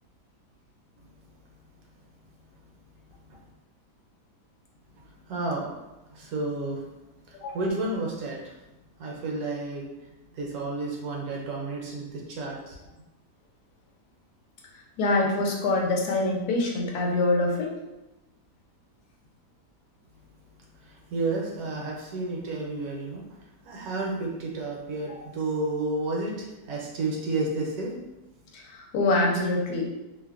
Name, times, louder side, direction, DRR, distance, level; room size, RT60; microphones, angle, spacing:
voice 1, 5.3-5.8 6.1-6.8 7.3-8.5 9.0-9.9 10.3-12.8 20.8-23.2 23.6-27.9, right 2 dB, 75° right, -2 dB, 1.0 m, -31 dB
voice 2, 15.0-17.7 25.1-25.2 28.5-29.9, left 2 dB, 75° left, -1 dB, 1.1 m, -25 dB
2.8 x 2.1 x 2.3 m, 0.99 s
omnidirectional pair, 1.7 m